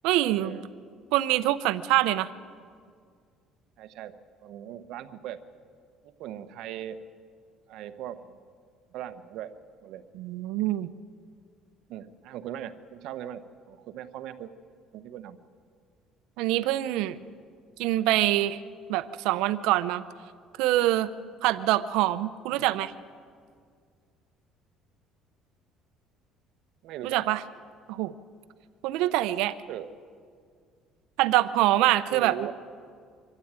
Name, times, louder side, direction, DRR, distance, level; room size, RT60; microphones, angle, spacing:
voice 1, 0.0-0.6 1.1-2.3 10.2-10.9 16.4-17.2 17.8-18.6 18.9-20.0 20.6-21.1 21.4-22.9 27.0-27.4 27.9-28.1 28.8-29.5 31.2-32.3, right 15 dB, 80° right, 13 dB, 0.7 m, -24 dB
voice 2, 3.8-4.1 4.4-5.4 6.0-7.0 7.7-8.4 8.9-9.5 9.8-10.0 11.9-14.5 14.9-15.4 22.6-22.7 26.8-27.2 29.7-29.9 32.1-32.5, right 11 dB, 65° right, 9 dB, 1.1 m, -39 dB
25.0 x 13.0 x 9.0 m, 2.1 s
cardioid pair, 145°, 0 cm